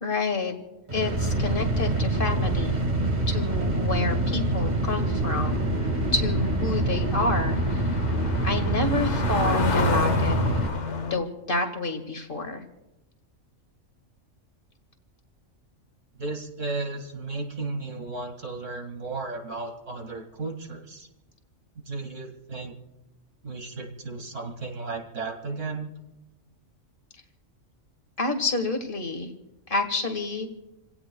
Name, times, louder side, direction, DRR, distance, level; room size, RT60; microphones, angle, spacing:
voice 1, 0.0-0.5 0.9-2.8 3.3-5.7 6.1-8.0 8.4-10.4 11.1-12.6 28.2-29.3 29.7-30.5, left 3 dB, 40° left, 5 dB, 2.0 m, -29 dB
sound 1, 0.9-10.7, right 2 dB, 35° right, 1.6 m, -25 dB
sound 2, 4.7-11.2, left 4 dB, 65° left, 1.4 m, -31 dB
voice 2, 16.2-21.1 21.9-22.8 23.4-25.9, right 3 dB, 70° right, 4 dB, 2.4 m, -34 dB
29.0 x 17.0 x 2.3 m, 0.97 s
omnidirectional pair, 1.3 m